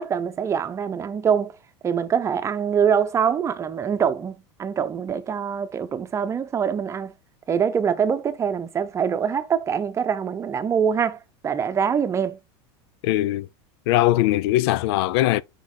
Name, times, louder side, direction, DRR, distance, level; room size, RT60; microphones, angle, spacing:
voice 1, 0.0-1.5 1.8-7.1 7.5-12.4, right 7 dB, 20° right, 0.8 m, -24 dB
voice 2, 13.0-13.5 13.9-15.4, left 16 dB, 70° left, 0.4 m, -20 dB
6.1 x 5.3 x 3.9 m
supercardioid pair, 140°, 14 cm